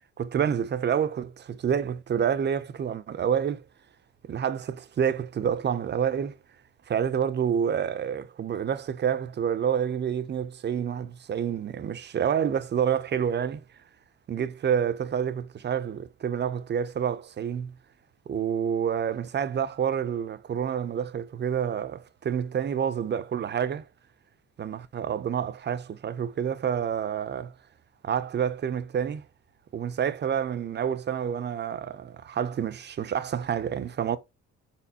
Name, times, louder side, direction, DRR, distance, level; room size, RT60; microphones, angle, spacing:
voice 1, 0.2-3.6 4.3-6.4 6.9-13.6 14.3-17.7 18.3-23.8 24.6-27.5 28.0-29.2 29.7-34.2, right 8 dB, 35° right, 0.5 m, -28 dB
4.2 x 3.8 x 2.7 m
cardioid pair, 90°, 30 cm